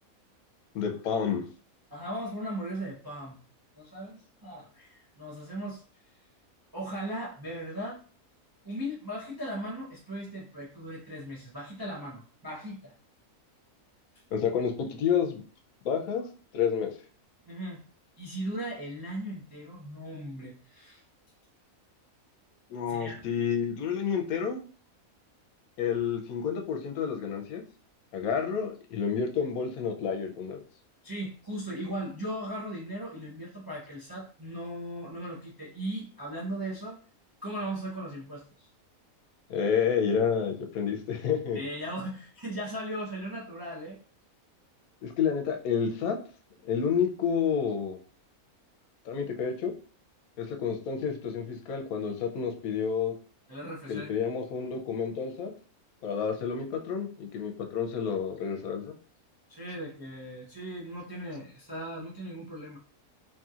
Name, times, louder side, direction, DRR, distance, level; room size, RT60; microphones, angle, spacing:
voice 1, 0.7-1.4 14.3-15.4 15.8-16.2 16.5-16.9 22.7-24.6 25.8-27.6 28.1-30.6 39.5-41.6 45.0-46.2 46.6-48.0 49.1-49.7 50.4-53.1 53.9-55.5 56.0-58.9, left 7 dB, 80° left, 4 dB, 1.0 m, -29 dB
voice 2, 1.9-3.4 3.8-5.8 6.7-8.0 8.6-12.9 17.5-17.8 18.2-21.0 22.9-23.2 31.0-37.0 37.4-38.7 41.5-44.0 53.5-54.1 59.5-62.8, right 1 dB, 35° right, -5 dB, 0.3 m, -38 dB
2.9 x 2.7 x 2.4 m, 0.39 s
omnidirectional pair, 1.5 m